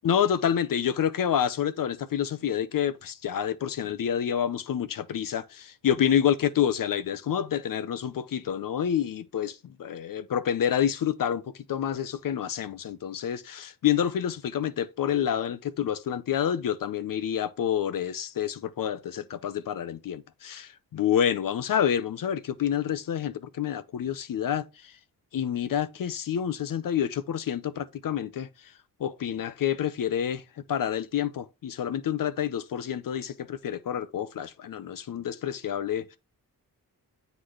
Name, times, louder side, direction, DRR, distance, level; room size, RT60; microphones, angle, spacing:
voice 1, 0.0-24.9 25.3-28.5 29.0-30.4 30.7-36.2, left 9 dB, 60° left, 0.6 m, -28 dB
7.8 x 4.0 x 3.1 m
cardioid pair, 100°, 38 cm